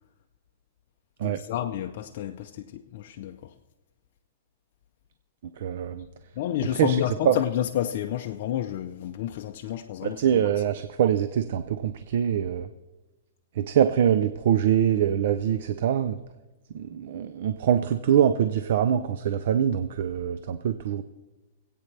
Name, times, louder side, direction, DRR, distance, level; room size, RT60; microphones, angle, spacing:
voice 1, 1.2-3.5 6.4-10.2, left 11 dB, 50° left, 0.6 m, -30 dB
voice 2, 5.6-6.1 6.7-7.4 10.0-12.7 13.5-16.2 16.7-21.0, right 9 dB, 60° right, 0.6 m, -24 dB
25.5 x 8.7 x 3.4 m
hypercardioid pair, 160°, 0 cm